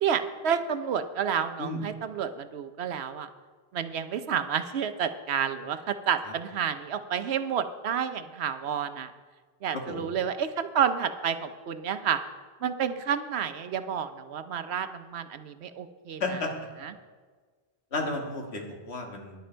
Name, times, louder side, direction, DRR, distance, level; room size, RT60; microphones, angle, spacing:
voice 1, 0.0-3.3 3.7-9.1 9.6-12.2 12.6-16.2 16.8-16.9, right 8 dB, 80° right, 10 dB, 1.0 m, -30 dB
voice 2, 9.7-10.1 16.2-16.5 17.9-19.3, left 2 dB, 80° left, 2 dB, 1.9 m, -32 dB
12.5 x 10.5 x 4.5 m, 1.5 s
omnidirectional pair, 1.1 m